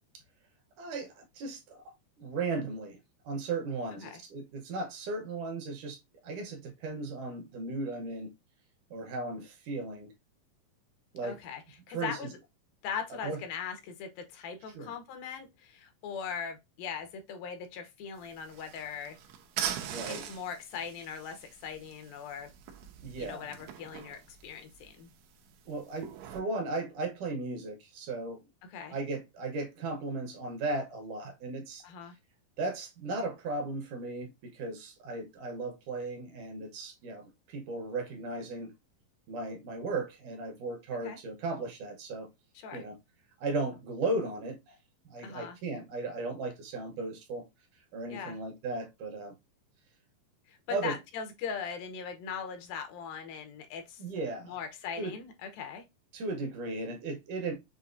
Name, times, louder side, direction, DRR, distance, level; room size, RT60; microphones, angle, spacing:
voice 1, 0.8-3.0 3.2-8.3 8.9-10.1 11.1-11.4 11.9-12.3 13.2-13.4 14.8-14.9 19.8-20.3 23.0-23.5 25.7-28.4 28.9-31.8 32.6-38.7 39.3-42.3 42.7-43.0 43.4-44.8 45.1-47.4 47.9-49.3 50.7-51.0 54.0-54.6 55.0-55.1 56.1-57.5, right 3 dB, 70° right, 2.3 m, -36 dB
voice 2, 11.2-11.6 11.9-12.3 12.8-19.2 20.1-22.5 23.2-25.1 28.6-29.0 31.8-32.2 41.0-41.2 42.6-42.8 45.2-45.6 48.1-48.4 50.5-54.0 54.4-55.8, left 7 dB, 80° left, 2.6 m, -40 dB
sound 1, 18.1-26.4, right 9 dB, 90° right, 2.6 m, -42 dB
6.7 x 2.8 x 2.6 m
omnidirectional pair, 4.0 m